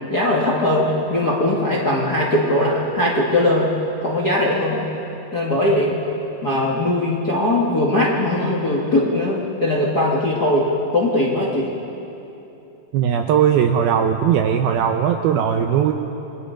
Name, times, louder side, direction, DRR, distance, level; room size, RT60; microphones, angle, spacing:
voice 1, 0.1-3.7 4.0-4.8 5.3-6.0 6.4-10.6 10.9-11.7, left 1 dB, 40° left, -3 dB, 1.4 m, -20 dB
voice 2, 12.9-15.9, right 8 dB, 80° right, 5 dB, 2.3 m, -18 dB
27.5 x 21.5 x 5.2 m, 3.0 s
omnidirectional pair, 5.0 m